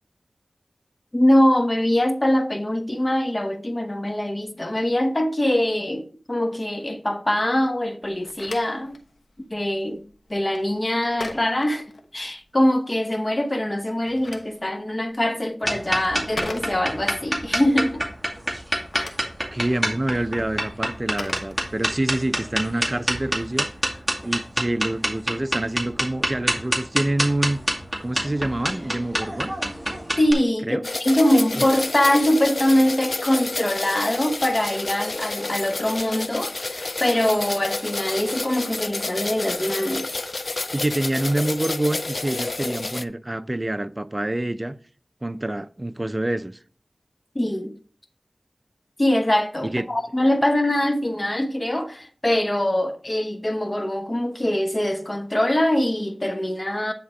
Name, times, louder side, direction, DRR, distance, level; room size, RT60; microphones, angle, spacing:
voice 1, 1.1-9.0 9.5-11.8 12.1-18.0 30.2-40.2 47.3-47.7 49.0-56.9, left 1 dB, 35° left, 1.0 m, -23 dB
Telephone, 8.0-12.6 13.8-17.2 18.6-22.2, left 2 dB, 80° left, 1.1 m, -40 dB
sound 1, 15.6-30.3, equal, 5° right, 2.2 m, -26 dB
voice 2, 19.5-23.7 24.2-27.6 28.0-29.5 30.7-30.8 31.6-31.7 40.7-44.8 45.2-46.6 49.7-49.9, right 1 dB, 30° right, 0.5 m, -26 dB
sound 2, 30.8-43.0, left 2 dB, 65° left, 0.3 m, -30 dB
9.4 x 3.7 x 4.8 m
wide cardioid pair, 40°, 0 cm